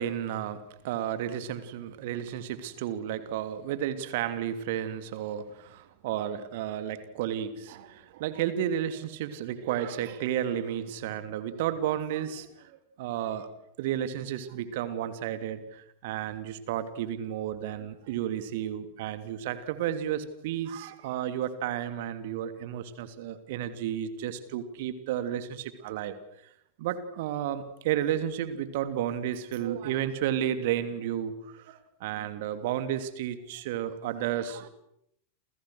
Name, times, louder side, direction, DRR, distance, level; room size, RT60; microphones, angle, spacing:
voice 1, 0.0-13.5 13.8-26.2 26.8-34.7, right 10 dB, 50° right, 11 dB, 3.0 m, -32 dB
30.0 x 29.0 x 6.5 m, 0.75 s
figure-of-eight pair, 90°, 0 cm